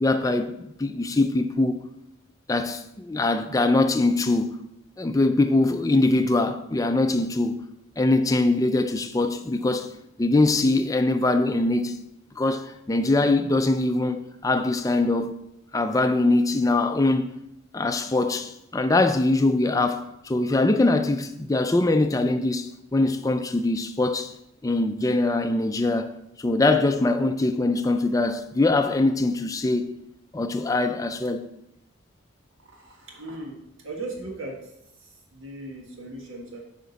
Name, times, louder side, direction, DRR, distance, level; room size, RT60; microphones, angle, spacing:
voice 1, 0.0-1.8 2.5-4.6 5.0-7.6 8.0-9.9 10.2-12.0 12.4-15.4 15.7-17.3 17.7-24.3 24.6-26.1 26.4-29.9 30.3-31.5, left 2 dB, 15° left, 0.4 m, -22 dB
voice 2, 32.7-33.5 33.8-34.6 35.0-36.6, right 2 dB, 75° right, 1.5 m, -37 dB
9.1 x 5.1 x 4.1 m
head